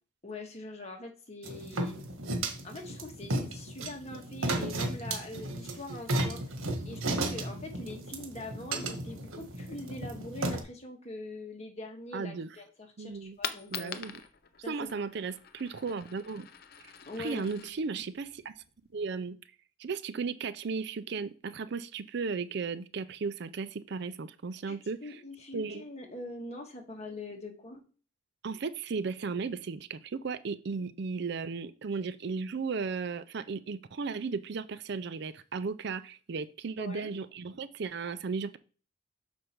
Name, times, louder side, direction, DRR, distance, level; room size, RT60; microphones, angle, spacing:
voice 1, 0.2-2.0 2.6-6.4 6.8-14.0 14.6-15.0 17.0-18.0 24.7-24.8 25.0-27.8 36.8-37.2, left 2 dB, 30° left, 1.7 m, -43 dB
sound 1, 1.4-10.6, right 2 dB, 90° right, 1.5 m, -34 dB
voice 2, 12.1-12.5 13.0-13.4 13.7-14.2 14.7-16.5 16.8-16.9 17.2-18.5 18.9-19.4 19.8-25.0 25.5-25.9 28.4-38.6, right 4 dB, 55° right, 0.4 m, -35 dB
Coin (dropping), 13.1-19.1, left 8 dB, 50° left, 0.6 m, -44 dB
6.4 x 5.2 x 4.5 m
head